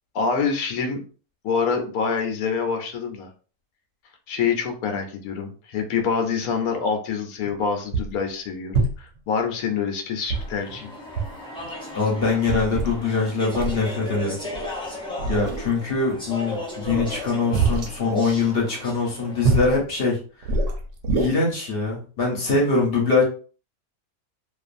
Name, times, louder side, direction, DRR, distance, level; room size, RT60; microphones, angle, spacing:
voice 1, 0.1-1.0 1.4-3.3 4.3-10.9, left 5 dB, 80° left, 5 dB, 1.1 m, -26 dB
sound 1, 7.4-7.5 7.9-8.2 8.7-9.2 10.3-10.8 11.2-11.4 11.6-11.7 12.2-13.0 13.5-13.8 14.5-14.7 15.2-15.8 16.8-17.9 19.4-19.8 20.4-21.3, right 3 dB, 65° right, 0.9 m, -25 dB
Speech / Chatter, 10.3-19.7, left 1 dB, 10° left, 0.3 m, -36 dB
voice 2, 11.9-14.4 14.8-14.9 15.3-20.2 21.1-23.2, left 4 dB, 45° left, -2 dB, 0.9 m, -23 dB
2.5 x 2.5 x 2.4 m, 0.39 s
omnidirectional pair, 1.5 m